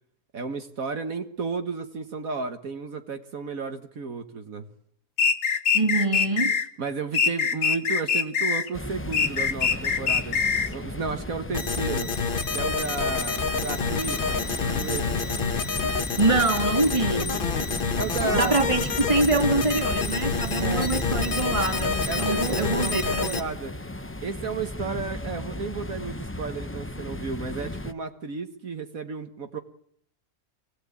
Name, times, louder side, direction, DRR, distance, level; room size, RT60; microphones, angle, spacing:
voice 1, 0.3-4.7 6.8-10.4 10.7-12.1 12.5-14.2 14.6-15.0 18.0-18.6 20.6-20.9 22.1-23.7 24.2-29.6, right 4 dB, 70° right, 6 dB, 1.9 m, -32 dB
sound 1, 5.2-6.7 7.1-8.7 9.1-10.7, left 6 dB, 60° left, 1.6 m, -23 dB
voice 2, 5.7-6.5 16.2-17.3 18.3-23.4, right 2 dB, 20° right, 6 dB, 2.4 m, -25 dB
sound 2, 8.7-27.9, left 1 dB, 10° left, 0.7 m, -35 dB
sound 3, 11.5-23.4, left 5 dB, 40° left, 1.2 m, -28 dB
25.0 x 17.5 x 8.5 m, 0.66 s
omnidirectional pair, 1.5 m